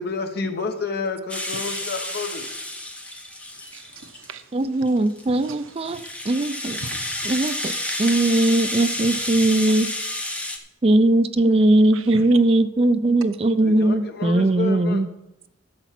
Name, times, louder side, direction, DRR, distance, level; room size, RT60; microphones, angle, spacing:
voice 1, 0.0-2.5 13.6-15.0, left 3 dB, 50° left, 1.2 m, -29 dB
Rattle (instrument), 1.3-4.3 4.9-10.6, left 1 dB, 5° left, 0.9 m, -30 dB
voice 2, 3.5-4.9 5.3-6.0 6.8-7.3 9.0-9.1 9.7-9.8 11.9-12.4, right 4 dB, 90° right, 0.9 m, -40 dB
voice 3, 4.5-6.0 6.3-6.8 7.3-7.7 8.0-9.9 10.8-15.1, right 2 dB, 30° right, 0.4 m, -19 dB
11.0 x 7.1 x 5.9 m
head